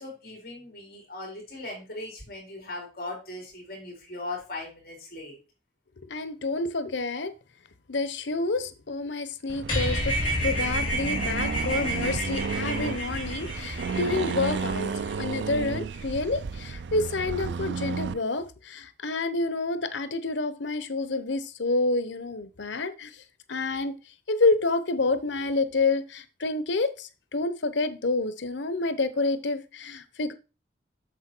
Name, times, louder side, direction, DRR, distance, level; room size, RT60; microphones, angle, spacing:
voice 1, 0.0-5.4, left 2 dB, 55° left, 4.2 m, -39 dB
voice 2, 6.1-7.3 7.9-10.1 10.4-14.9 15.2-23.1 23.5-23.9 24.3-30.3, left 3 dB, 90° left, 0.9 m, -28 dB
Accelerating revving vroom, 9.5-18.2, right 5 dB, 80° right, 0.4 m, -33 dB
sound 1, 9.7-15.3, equal, 30° left, 3.9 m, -30 dB
8.1 x 6.8 x 4.5 m
head